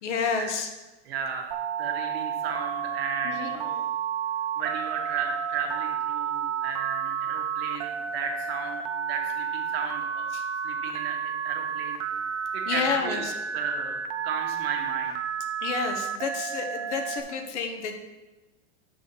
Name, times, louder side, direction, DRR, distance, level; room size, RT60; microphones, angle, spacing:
voice 1, 0.0-0.7 3.2-3.7 10.3-10.4 12.6-13.3 15.6-18.0, left 5 dB, 70° left, 5 dB, 1.3 m, -30 dB
voice 2, 1.0-3.9 4.6-10.3 10.6-12.0 12.3-15.3, right 6 dB, 55° right, 2 dB, 1.6 m, -35 dB
Telephone, 1.5-17.2, right 8 dB, 35° right, 0.4 m, -31 dB
6.2 x 5.5 x 5.7 m, 1.1 s
supercardioid pair, 165°, 36 cm